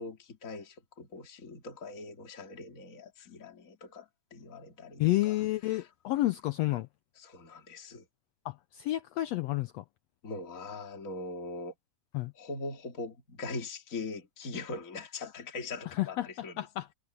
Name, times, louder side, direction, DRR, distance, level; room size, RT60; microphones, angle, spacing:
voice 1, 0.0-5.9 7.2-8.1 10.2-11.7 12.3-16.7, left 3 dB, 25° left, 2.8 m, -42 dB
voice 2, 5.0-6.9 8.4-9.8 12.1-12.3 15.9-16.9, left 17 dB, 85° left, 1.4 m, -30 dB
omnidirectional pair, 3.6 m